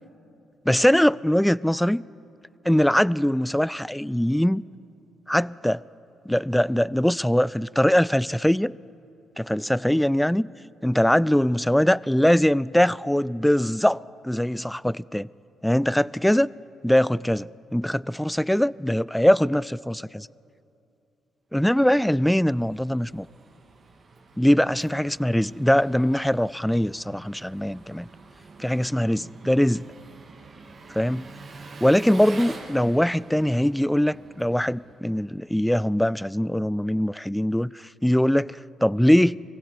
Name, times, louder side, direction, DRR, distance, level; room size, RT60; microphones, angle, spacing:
voice 1, 0.7-2.0 2.6-4.6 5.3-5.8 6.3-8.8 9.4-10.5 10.8-15.3 15.6-16.5 16.8-20.3 21.5-23.3 24.4-28.1 28.6-29.8 30.9-31.3 31.8-37.7 38.0-39.4, equal, 5° left, 0.4 m, -22 dB
Engine, 22.0-35.5, right 3 dB, 50° right, 2.4 m, -46 dB
23.5 x 16.0 x 8.4 m
supercardioid pair, 60°, 0 cm